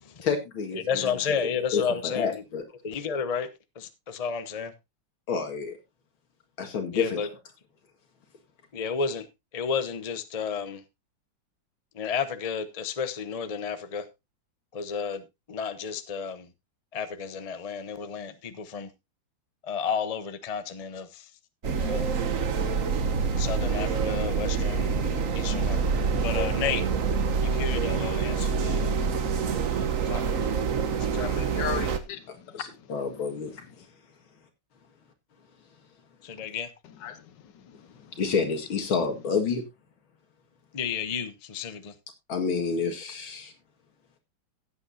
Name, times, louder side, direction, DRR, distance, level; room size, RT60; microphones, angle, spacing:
voice 1, 0.2-1.2 1.7-2.6 5.3-5.8 6.6-7.2 32.5-33.7 38.2-39.6 42.3-43.5, left 5 dB, 85° left, 2.7 m, -29 dB
voice 2, 0.7-2.4 2.8-3.5 3.7-4.7 6.9-7.3 8.7-9.3 9.5-10.8 11.9-14.1 14.7-16.5 16.9-18.9 19.6-21.3 21.6-22.1 23.4-25.0 25.3-26.8 27.4-29.0 29.7-30.2 31.0-31.3 36.2-36.7 40.7-41.9, left 6 dB, 40° left, 0.5 m, -32 dB
sound 1, 21.6-32.0, right 5 dB, 50° right, 1.2 m, -26 dB
voice 3, 31.1-32.6 37.0-37.9, left 8 dB, 65° left, 1.7 m, -37 dB
16.0 x 8.3 x 2.7 m
omnidirectional pair, 2.2 m